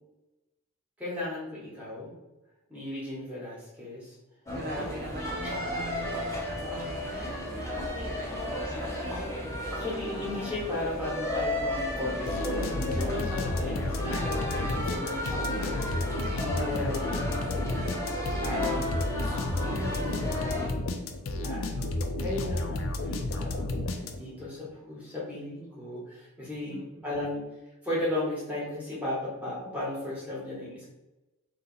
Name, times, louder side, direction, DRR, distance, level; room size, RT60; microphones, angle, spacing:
voice 1, 1.0-2.2 2.7-4.2 4.8-4.9 5.4-5.6 9.7-17.7 18.2-19.0 19.6-20.6 21.4-27.4 27.8-30.9, left 1 dB, 5° right, -7 dB, 1.2 m, -36 dB
sound 1, 4.5-20.7, left 1 dB, 10° left, 0.6 m, -33 dB
voice 2, 4.5-9.6 21.7-22.5 26.7-27.0, right 2 dB, 40° right, -3 dB, 0.5 m, -43 dB
sound 2, 12.3-24.5, left 2 dB, 60° left, 0.4 m, -32 dB
2.8 x 2.7 x 4.0 m, 1.0 s
head